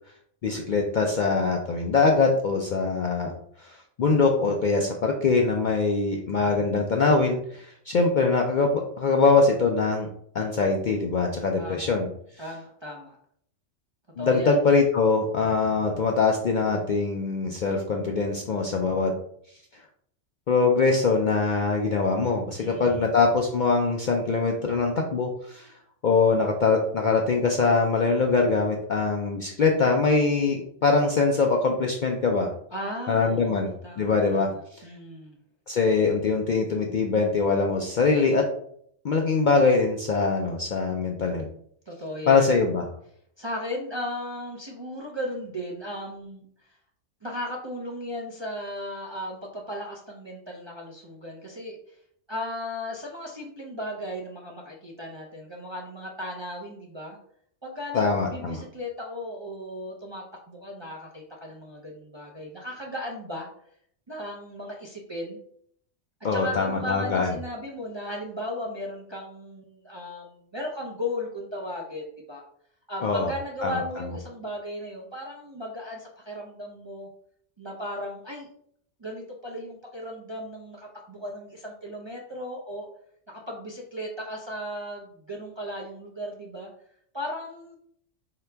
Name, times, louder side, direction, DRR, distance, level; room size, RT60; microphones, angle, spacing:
voice 1, 0.4-3.3 3.6-10.1 10.3-12.1 14.2-19.1 19.7-19.8 20.5-25.7 26.0-32.5 33.1-34.9 35.7-38.5 39.0-41.5 42.3-42.9 57.9-58.6 66.2-67.3 73.0-73.3 73.6-73.8, left 4 dB, 60° left, 1 dB, 0.5 m, -23 dB
voice 2, 11.6-11.9 12.4-13.2 14.2-14.6 22.6-23.0 32.7-35.4 41.9-42.5 43.4-46.4 47.2-51.8 52.3-57.2 57.6-63.5 64.1-65.4 66.3-72.4 72.9-77.1 77.6-78.5 79.0-82.9 83.3-86.7 87.1-87.8, left 1 dB, 35° right, -2 dB, 0.5 m, -36 dB
4.7 x 2.9 x 3.3 m, 0.66 s
omnidirectional pair, 1.3 m